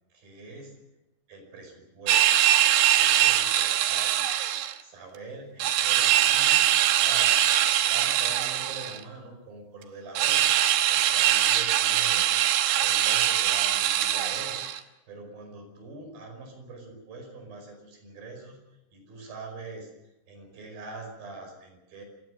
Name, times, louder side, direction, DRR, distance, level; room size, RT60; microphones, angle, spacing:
voice 1, 0.1-0.9 1.3-2.3 2.9-4.1 4.8-10.5 10.9-18.6 18.9-22.0, right 3 dB, 50° right, 4 dB, 6.7 m, -44 dB
sound 1, 2.1-4.7 5.6-9.0 10.1-14.8, right 12 dB, 70° right, 3.0 m, -22 dB
28.0 x 16.0 x 6.6 m, 0.97 s
omnidirectional pair, 5.4 m